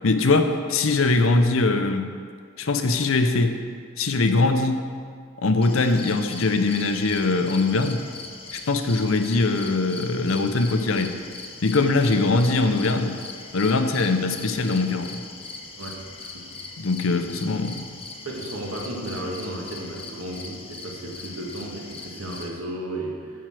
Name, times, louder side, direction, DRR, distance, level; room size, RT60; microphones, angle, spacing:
voice 1, 0.0-2.1 2.6-3.6 4.0-4.8 5.4-8.0 8.5-11.1 11.6-13.2 13.5-15.2 16.8-17.8, left 3 dB, 65° left, 7 dB, 0.7 m, -22 dB
sound 1, 5.6-22.5, left 3 dB, 25° left, 0.8 m, -40 dB
voice 2, 15.8-16.4 18.2-23.3, right 1 dB, 80° right, -2 dB, 1.7 m, -34 dB
9.4 x 4.6 x 7.6 m, 2.1 s
head